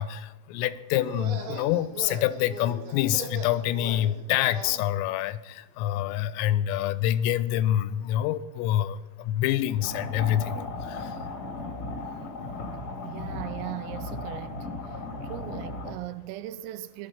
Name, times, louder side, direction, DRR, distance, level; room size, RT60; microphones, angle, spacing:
voice 1, 0.0-11.1, left 12 dB, 85° left, 3.3 m, -27 dB
sound 1, 1.0-4.8, right 4 dB, 70° right, 5.0 m, -40 dB
sound 2, 9.8-15.9, left 2 dB, 50° left, 1.1 m, -36 dB
voice 2, 13.0-14.7 15.2-17.1, right 14 dB, 85° right, 3.4 m, -38 dB
19.0 x 12.0 x 5.6 m
omnidirectional pair, 5.9 m